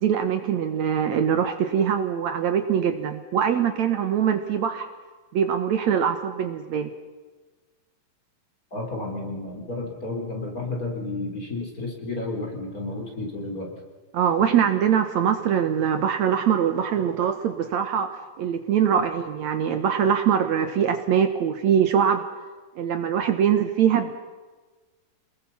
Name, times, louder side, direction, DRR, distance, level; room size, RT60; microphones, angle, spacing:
voice 1, 0.0-4.9 5.3-6.9 14.1-18.1 18.4-22.2 22.8-24.1, right 8 dB, 65° right, 8 dB, 2.3 m, -23 dB
voice 2, 8.7-13.7, left 2 dB, 25° left, 1 dB, 4.3 m, -32 dB
29.0 x 20.5 x 5.6 m, 1.3 s
omnidirectional pair, 3.7 m